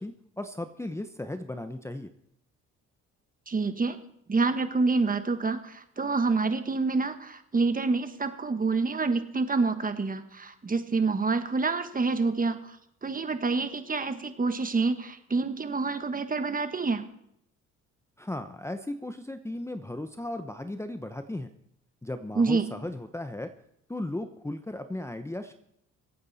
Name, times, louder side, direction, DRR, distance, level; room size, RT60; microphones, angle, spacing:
voice 1, 0.0-2.1 18.2-21.5 22.0-23.5 23.9-25.5, left 1 dB, 10° left, 9 dB, 0.8 m, -36 dB
voice 2, 3.5-4.0 4.3-12.8 13.0-17.0 22.3-22.7, right 4 dB, 30° right, 9 dB, 1.3 m, -27 dB
23.5 x 8.7 x 4.2 m, 0.74 s
cardioid pair, 90°, 30 cm